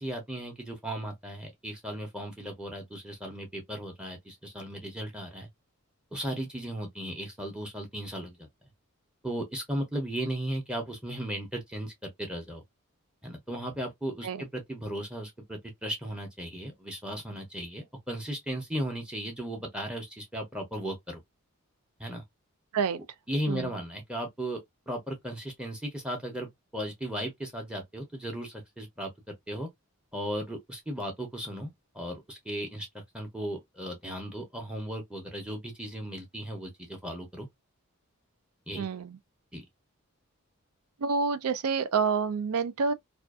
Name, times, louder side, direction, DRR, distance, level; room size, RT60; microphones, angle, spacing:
voice 1, 0.0-5.5 6.1-8.5 9.2-12.6 13.2-21.2 22.0-22.2 23.3-24.6 24.9-29.7 30.1-37.5 38.7-38.9 39.5-39.6, right 1 dB, 5° right, 0.6 m, -36 dB
voice 2, 23.5-23.8 38.7-39.2 41.0-42.9, right 5 dB, 80° right, 0.4 m, -28 dB
2.5 x 2.3 x 2.3 m
head